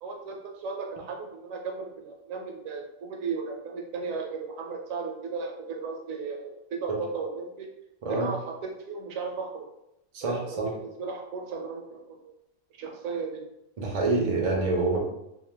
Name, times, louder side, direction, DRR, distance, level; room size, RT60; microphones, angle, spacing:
voice 1, 0.0-7.7 8.1-9.7 10.2-10.4 10.8-12.2 12.7-13.4, right 4 dB, 75° right, 2 dB, 0.9 m, -35 dB
voice 2, 10.1-10.7 13.8-15.0, right 3 dB, 50° right, -1 dB, 0.4 m, -26 dB
2.6 x 2.2 x 3.2 m, 0.85 s
omnidirectional pair, 1.4 m